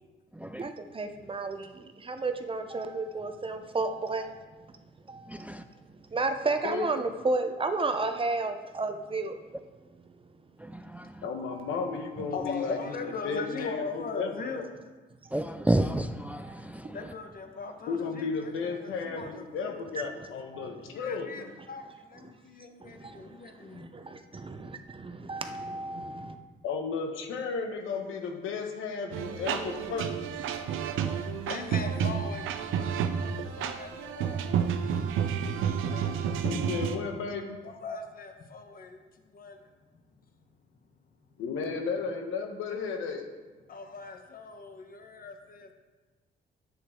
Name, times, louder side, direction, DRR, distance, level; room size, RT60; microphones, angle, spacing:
voice 1, 0.3-0.7 5.3-5.6 10.6-11.3 15.3-17.1, right 1 dB, 5° right, 0.4 m, -31 dB
voice 2, 1.0-1.6 2.2-4.2 6.1-9.3 25.3-26.3, right 3 dB, 25° right, 0.7 m, -30 dB
voice 3, 11.2-12.8 13.2-14.6 17.9-21.5 26.6-30.1 36.4-37.6 41.4-43.2, left 5 dB, 90° left, 1.2 m, -34 dB
voice 4, 12.3-14.7 16.9-19.8 20.9-23.9 31.1-34.4 35.7-36.2 37.6-39.0 39.3-39.6 43.7-45.7, left 4 dB, 45° left, 1.2 m, -40 dB
sound 1, 29.1-37.0, right 7 dB, 85° right, 0.7 m, -30 dB
9.8 x 7.8 x 3.7 m
cardioid pair, 90°, 20 cm